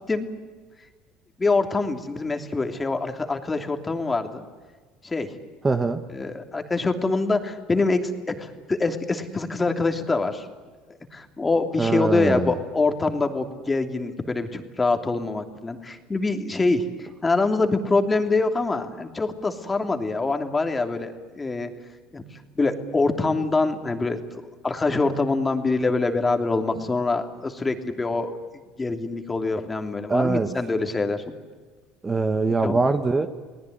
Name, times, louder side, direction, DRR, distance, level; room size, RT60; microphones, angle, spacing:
voice 1, 1.4-4.4 5.0-5.4 6.1-10.5 11.1-16.8 17.2-21.7 22.1-22.2 22.6-28.4 28.8-31.2 32.6-32.7, left 3 dB, 20° left, 6 dB, 3.0 m, -25 dB
voice 2, 5.6-6.0 11.8-12.6 30.1-30.5 32.0-33.3, right 3 dB, 20° right, 9 dB, 1.6 m, -22 dB
30.0 x 19.0 x 9.5 m, 1.4 s
supercardioid pair, 90°, 0 cm